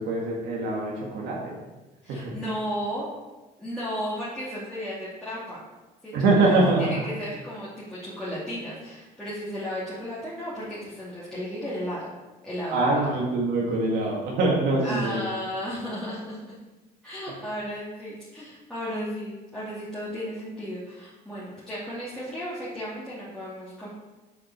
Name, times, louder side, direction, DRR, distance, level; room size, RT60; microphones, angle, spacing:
voice 1, 0.0-1.6 2.1-2.3 6.1-6.9 12.7-15.2, right 2 dB, 80° right, -3 dB, 2.1 m, -24 dB
voice 2, 2.0-3.1 3.6-5.6 6.0-12.1 12.4-13.1 14.8-16.5 17.0-23.9, equal, 5° left, -10 dB, 2.8 m, -34 dB
7.6 x 5.3 x 6.7 m, 1.1 s
cardioid pair, 110°, 17 cm